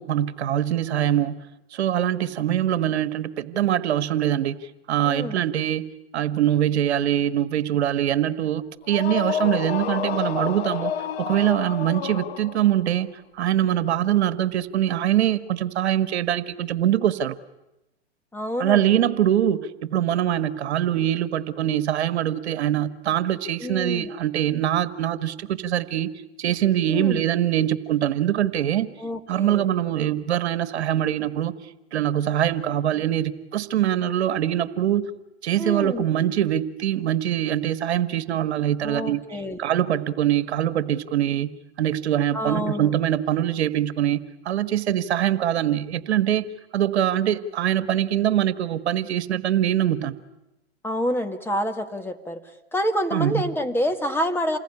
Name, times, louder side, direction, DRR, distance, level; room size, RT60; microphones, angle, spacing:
voice 1, 0.0-5.9 6.1-10.9 11.2-13.1 13.4-17.4 18.6-26.1 26.4-28.9 29.3-31.5 31.9-35.1 35.4-39.2 39.6-41.5 41.8-46.5 46.7-50.2 53.1-53.5, right 11 dB, 70° right, 13 dB, 1.5 m, -23 dB
voice 2, 5.0-5.4 18.3-19.0 23.6-24.1 26.9-27.2 29.0-29.7 35.6-36.0 38.8-39.7 42.3-42.9 50.8-52.4 52.7-54.6, equal, 5° left, 6 dB, 1.8 m, -27 dB
sound 1, 8.8-12.8, left 9 dB, 65° left, 1.5 m, -29 dB
28.5 x 21.0 x 9.9 m, 0.93 s
hypercardioid pair, 120°, 34 cm